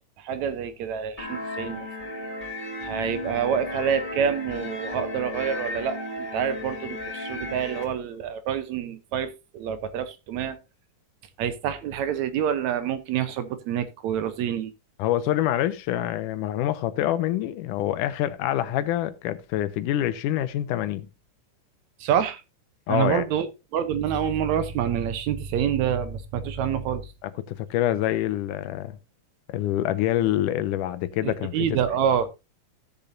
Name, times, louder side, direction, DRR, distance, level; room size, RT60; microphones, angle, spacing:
voice 1, 0.2-1.9 2.8-10.6 11.4-14.7 22.0-22.4 22.9-27.1 31.2-32.3, right 8 dB, 75° right, 2.0 m, -27 dB
sound 1, 1.2-7.8, left 2 dB, 15° left, 2.9 m, -34 dB
voice 2, 15.0-21.1 22.9-23.2 27.2-28.9 29.5-31.8, left 13 dB, 85° left, 2.3 m, -26 dB
16.0 x 6.9 x 2.6 m
omnidirectional pair, 3.6 m